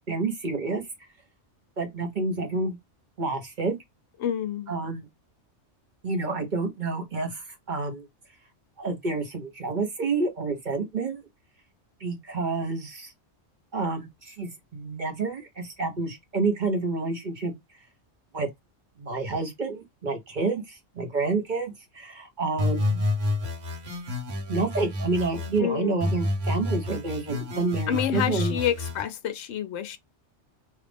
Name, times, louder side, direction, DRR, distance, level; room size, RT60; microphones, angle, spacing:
voice 1, 0.1-0.9 1.8-2.8 3.2-3.8 4.7-5.1 6.0-8.1 8.8-11.2 12.0-13.1 13.7-17.5 18.3-18.5 19.0-23.0 24.5-28.5, right 3 dB, 45° right, 1.0 m, -29 dB
voice 2, 4.2-4.7 25.6-25.9 27.9-30.0, left 10 dB, 70° left, 0.9 m, -28 dB
sound 1, 22.6-25.6 26.0-29.0, left 2 dB, 85° right, 1.5 m, -29 dB
2.9 x 2.5 x 3.3 m
omnidirectional pair, 1.2 m